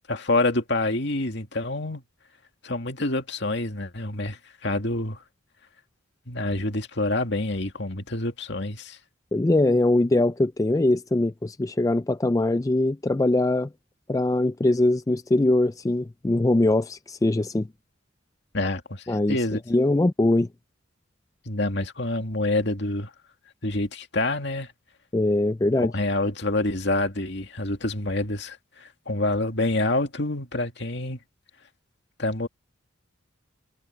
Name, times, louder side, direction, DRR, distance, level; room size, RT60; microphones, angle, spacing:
voice 1, 0.1-2.0 2.6-5.2 6.3-9.0 18.5-19.6 21.5-23.1 23.6-24.7 25.9-31.2 32.2-32.5, left 2 dB, 60° left, 2.4 m, -27 dB
voice 2, 9.3-13.7 14.1-17.7 19.1-19.4 19.7-20.5 25.1-25.9, left 2 dB, 15° left, 0.4 m, -22 dB
head